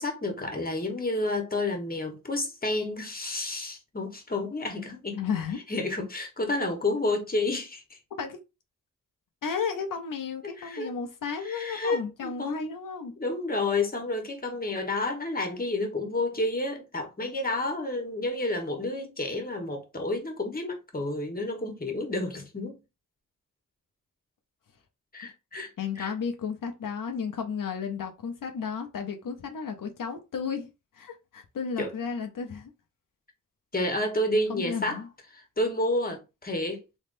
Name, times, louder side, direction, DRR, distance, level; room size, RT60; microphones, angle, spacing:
voice 1, 0.0-5.2 5.7-8.0 10.6-10.9 11.4-12.8 13.2-22.8 25.1-25.7 26.0-26.1 31.8-31.9 33.7-35.0 35.3-36.8, left 2 dB, 30° left, 1.2 m, -30 dB
voice 2, 5.1-5.6 8.2-8.4 9.4-13.1 25.8-32.7 34.5-35.1, left 6 dB, 85° left, 0.7 m, -33 dB
3.5 x 3.1 x 2.6 m
cardioid pair, 50°, 32 cm